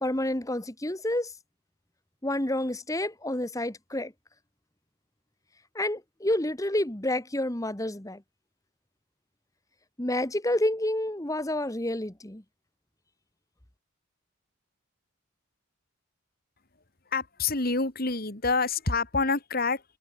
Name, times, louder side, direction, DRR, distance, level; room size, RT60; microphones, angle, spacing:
voice 1, 0.0-1.3 2.2-4.1 5.7-8.2 10.0-12.4, left 1 dB, 15° left, 1.4 m, -29 dB
voice 2, 17.1-19.8, left 4 dB, 45° left, 2.1 m, -27 dB
head